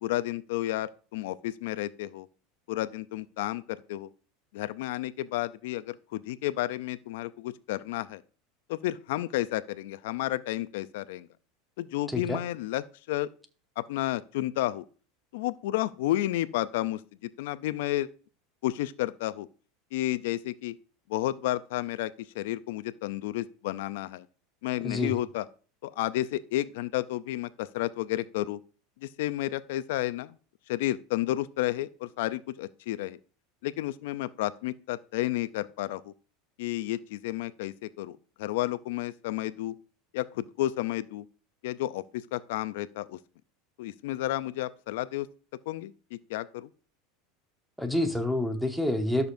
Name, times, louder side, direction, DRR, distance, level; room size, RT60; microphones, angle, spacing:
voice 1, 0.0-2.3 2.7-4.1 4.5-8.2 8.7-11.3 11.8-13.3 13.8-14.8 15.3-18.1 18.6-19.5 19.9-20.7 21.1-24.3 24.6-25.5 25.8-28.6 29.0-30.4 30.7-33.2 33.6-36.1 36.6-39.8 40.1-41.3 41.6-43.2 43.8-45.3 45.7-46.7, left 15 dB, 75° left, 0.4 m, -31 dB
voice 2, 47.8-49.3, left 1 dB, ahead, 1.1 m, -28 dB
12.5 x 6.6 x 2.6 m
supercardioid pair, 130°, 0 cm